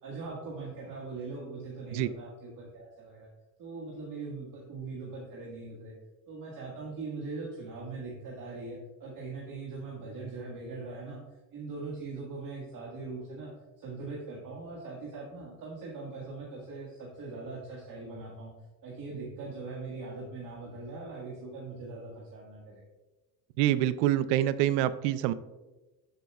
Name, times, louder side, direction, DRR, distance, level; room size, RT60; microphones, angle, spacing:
voice 1, 0.0-3.3 3.6-6.0 6.3-11.2 11.5-18.5 18.8-22.8, right 3 dB, 45° right, -4 dB, 1.7 m, -41 dB
voice 2, 23.6-25.3, right 13 dB, 85° right, 14 dB, 0.6 m, -26 dB
12.5 x 5.2 x 2.3 m, 1.1 s
cardioid pair, 115°, 44 cm